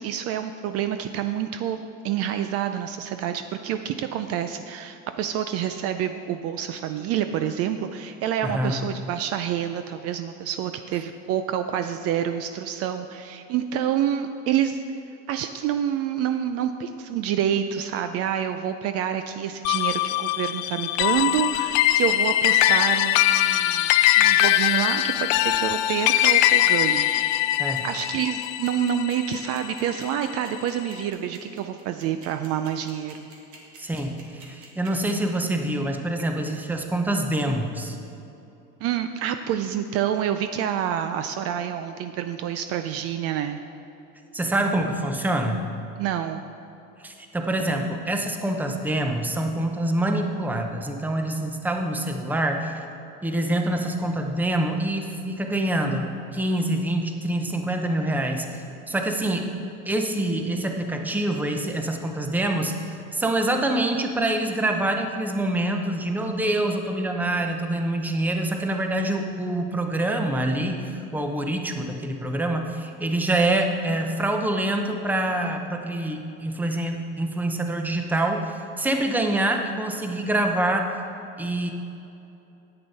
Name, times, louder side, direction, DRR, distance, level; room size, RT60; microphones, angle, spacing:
voice 1, 0.0-1.8 2.0-14.8 15.3-27.1 27.6-33.3 38.8-43.6 46.0-46.4 76.8-76.9, right 9 dB, 50° right, 8 dB, 0.4 m, -28 dB
voice 2, 8.4-8.8 27.6-27.8 33.8-38.0 44.3-45.6 47.0-52.7 53.2-80.9 81.4-81.7, right 1 dB, 5° right, 4 dB, 0.6 m, -26 dB
sound 1, 19.6-30.3, left 13 dB, 60° left, 0.4 m, -21 dB
sound 2, 21.1-35.1, right 5 dB, 90° right, 2.0 m, -47 dB
9.8 x 8.8 x 4.1 m, 2.8 s
cardioid pair, 130°, 33 cm